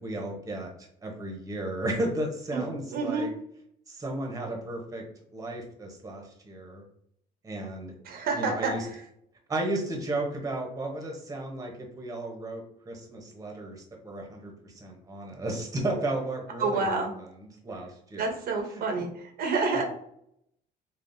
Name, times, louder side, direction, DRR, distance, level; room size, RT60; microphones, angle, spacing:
voice 1, 0.0-3.3 3.9-5.1 5.3-6.8 7.4-7.9 8.4-8.8 9.5-16.9 17.6-18.2 19.7-19.8, right 1 dB, 20° right, 1 dB, 0.8 m, -34 dB
voice 2, 2.9-3.3 8.0-9.0 16.6-17.1 18.1-19.8, right 4 dB, 65° right, 3 dB, 0.8 m, -29 dB
3.5 x 2.3 x 2.6 m, 0.70 s
cardioid pair, 110°, 17 cm